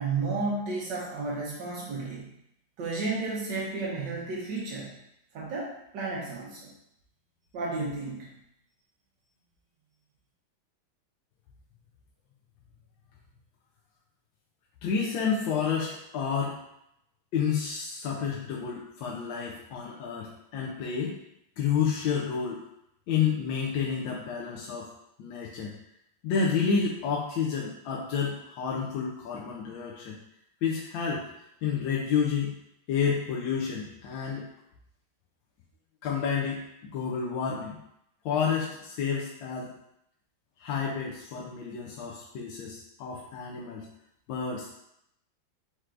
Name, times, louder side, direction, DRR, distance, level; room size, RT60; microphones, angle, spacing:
voice 1, 0.0-2.3 2.8-4.9 5.3-6.7 7.5-8.3, right 3 dB, 65° right, -4 dB, 1.4 m, -32 dB
voice 2, 14.8-16.6 17.3-21.2 21.6-22.6 23.1-24.9 25.2-25.7 26.2-30.2 30.6-31.2 31.6-32.5 32.9-34.5 36.0-37.8 38.2-39.7 40.6-43.9 44.3-44.7, left 6 dB, 75° left, -3 dB, 1.3 m, -30 dB
4.6 x 4.4 x 2.5 m, 0.79 s
omnidirectional pair, 2.1 m